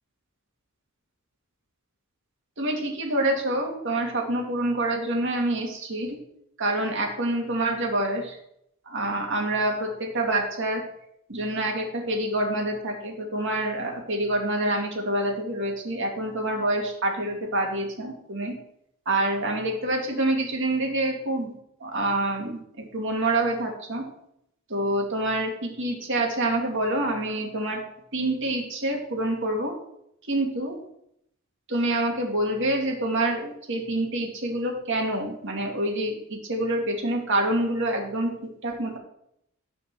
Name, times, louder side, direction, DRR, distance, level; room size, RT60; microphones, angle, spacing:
voice 1, 2.6-6.2 6.6-8.4 8.9-10.8 11.3-18.5 19.1-21.5 21.8-24.0 24.7-27.8 28.1-29.7 30.3-30.8 31.7-38.3 38.6-39.0, right 1 dB, 60° right, 1 dB, 2.0 m, -27 dB
9.7 x 4.3 x 6.7 m, 0.76 s
head